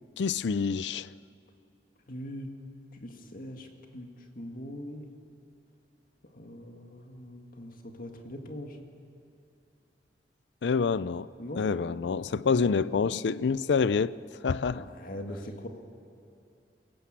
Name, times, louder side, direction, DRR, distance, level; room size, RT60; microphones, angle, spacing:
voice 1, 0.2-1.1 10.6-11.3 11.6-14.1 14.4-14.9, left 5 dB, 75° left, 0.5 m, -27 dB
voice 2, 2.1-2.5 3.0-4.1 4.3-5.0 6.3-8.8 11.4-11.7 14.7-15.7, left 1 dB, 55° left, 2.0 m, -41 dB
22.5 x 17.5 x 7.5 m
head